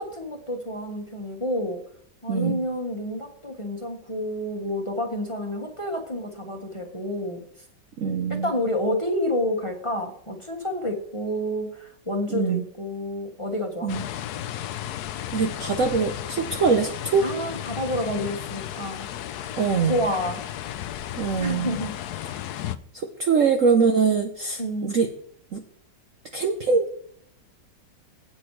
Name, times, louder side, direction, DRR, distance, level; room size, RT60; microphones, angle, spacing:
voice 1, 0.0-1.8 2.2-7.4 8.3-13.9 17.2-19.5 19.8-20.4 21.4-21.9 24.6-24.9, left 1 dB, 20° left, 2 dB, 1.3 m, -29 dB
voice 2, 2.3-2.6 8.0-8.5 12.3-12.6 13.8-14.0 15.3-17.2 19.6-20.0 21.2-21.7 22.9-25.1 25.5-25.6 26.3-27.0, right 5 dB, 55° right, 5 dB, 0.9 m, -23 dB
sound 1, 13.9-22.8, left 12 dB, 70° left, 1.0 m, -34 dB
16.5 x 6.1 x 3.2 m, 0.64 s
omnidirectional pair, 2.0 m